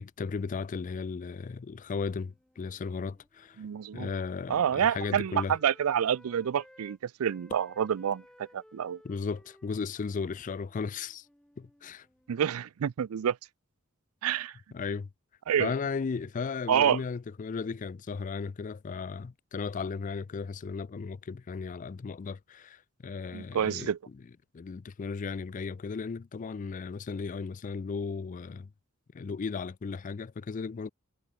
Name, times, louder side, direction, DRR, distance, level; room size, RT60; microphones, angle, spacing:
voice 1, 0.0-3.6 3.9-5.5 9.0-11.3 11.6-12.1 14.7-15.1 15.6-23.9 24.5-28.7 29.1-30.9, left 5 dB, 35° left, 0.4 m, -35 dB
Wind instrument woodwind instrument, 2.1-7.0 7.3-12.6, equal, 5° left, 0.9 m, -59 dB
voice 2, 3.6-4.1 4.5-8.2 8.5-9.0 12.3-13.4 14.2-14.6 15.5-15.7 16.7-17.0 23.3-24.0, right 8 dB, 85° right, 0.4 m, -28 dB
head